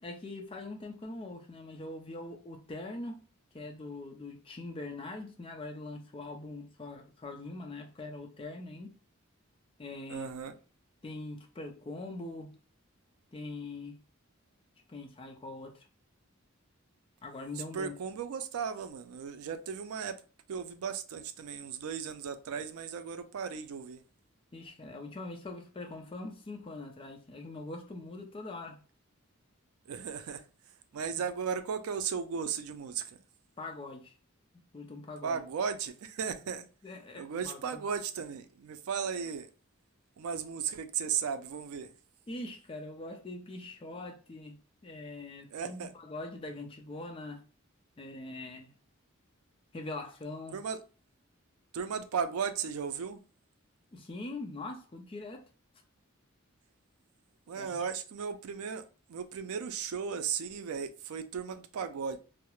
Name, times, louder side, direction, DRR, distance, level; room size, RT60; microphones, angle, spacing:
voice 1, 0.0-3.2 3.5-8.9 9.8-10.3 11.0-12.5 13.3-14.0 14.9-15.9 17.2-17.9 24.5-28.8 33.6-34.1 34.7-35.4 36.8-37.8 42.3-44.5 44.8-47.4 48.0-48.7 49.7-50.6 53.9-55.4 57.6-57.8, left 2 dB, 25° left, 0.3 m, -42 dB
voice 2, 10.1-10.6 17.6-20.2 20.5-24.0 29.8-33.2 35.2-36.6 37.2-39.5 40.2-41.9 45.5-45.9 50.5-50.8 51.7-53.2 57.5-62.2, right 6 dB, 85° right, 0.4 m, -36 dB
2.3 x 2.0 x 2.9 m
head